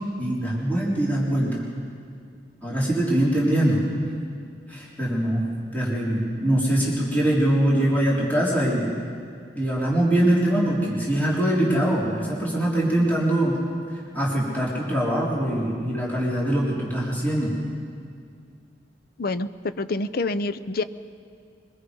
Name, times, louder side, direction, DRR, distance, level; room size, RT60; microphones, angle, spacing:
voice 1, 0.2-1.6 2.6-3.8 4.7-5.4 5.7-8.9 9.6-13.6 14.1-17.5, right 1 dB, 10° left, -7 dB, 4.0 m, -23 dB
voice 2, 19.2-20.8, left 3 dB, 55° left, 13 dB, 0.6 m, -27 dB
23.5 x 22.0 x 5.3 m, 2.3 s
head